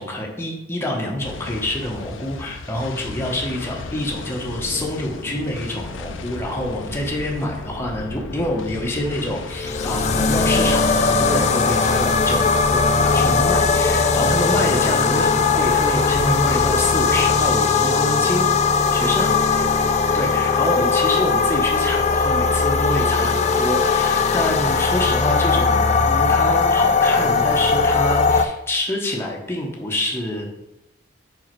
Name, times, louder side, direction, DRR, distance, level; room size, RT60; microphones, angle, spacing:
voice 1, 0.0-18.4 18.9-19.7 20.1-30.5, left 1 dB, 15° left, -1 dB, 1.0 m, -26 dB
sound 1, 1.2-17.5, left 3 dB, 90° left, 0.5 m, -34 dB
sound 2, 9.5-28.4, left 4 dB, 35° left, 0.4 m, -19 dB
5.3 x 4.6 x 4.6 m, 0.90 s
head